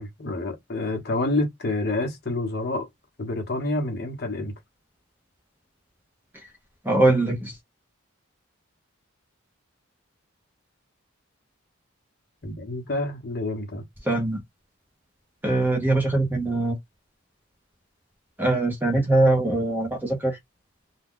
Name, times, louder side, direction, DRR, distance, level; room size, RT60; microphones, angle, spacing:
voice 1, 0.0-2.9 3.2-4.5 12.4-13.8, left 2 dB, 50° left, 0.9 m, -28 dB
voice 2, 6.8-7.5 14.0-14.4 15.4-16.8 18.4-20.4, right 2 dB, 10° right, 0.7 m, -22 dB
2.4 x 2.2 x 3.6 m
head